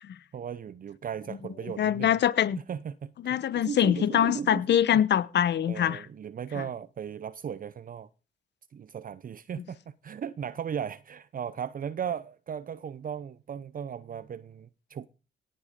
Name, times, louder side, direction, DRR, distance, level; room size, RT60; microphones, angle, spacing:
voice 1, 0.3-2.2 2.6-5.0 5.7-8.1 8.7-15.1, right 8 dB, 45° right, 0.7 m, -37 dB
voice 2, 1.8-2.6 3.2-6.0, left 10 dB, 60° left, 1.1 m, -24 dB
17.5 x 7.8 x 5.2 m
cardioid pair, 90°, 20 cm